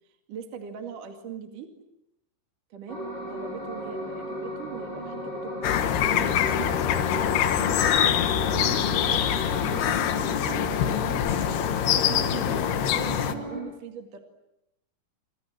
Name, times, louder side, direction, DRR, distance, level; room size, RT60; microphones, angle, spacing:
voice 1, 0.3-1.7 2.7-7.0 7.6-10.7 11.9-14.2, right 7 dB, 50° right, 5 dB, 3.4 m, -40 dB
sound 1, 2.9-13.6, equal, 20° left, 7.9 m, -36 dB
sound 2, 5.6-13.3, left 10 dB, 65° left, 3.2 m, -24 dB
29.5 x 26.0 x 7.8 m, 0.86 s
omnidirectional pair, 5.2 m